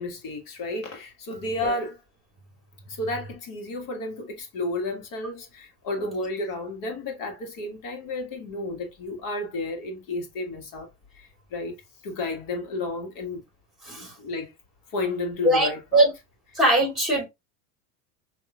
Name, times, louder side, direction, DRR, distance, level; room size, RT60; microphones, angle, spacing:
voice 1, 0.0-2.0 2.9-10.9 11.2-11.8 12.0-13.4 14.2-14.5 14.9-16.1, left 2 dB, 45° left, 1.8 m, -32 dB
voice 2, 15.4-16.1 16.5-17.3, right 1 dB, ahead, 2.9 m, -21 dB
5.5 x 2.9 x 2.4 m
hypercardioid pair, 110°, 45 cm